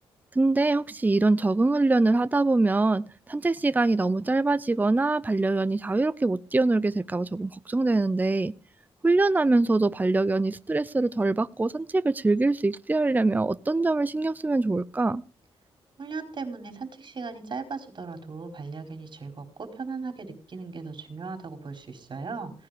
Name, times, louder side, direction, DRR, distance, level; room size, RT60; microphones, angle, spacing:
voice 1, 0.3-8.5 9.0-15.2, right 2 dB, 15° right, 0.6 m, -24 dB
voice 2, 16.0-22.5, right 4 dB, 50° right, 4.7 m, -37 dB
18.0 x 10.5 x 5.1 m
cardioid pair, 85°, 10 cm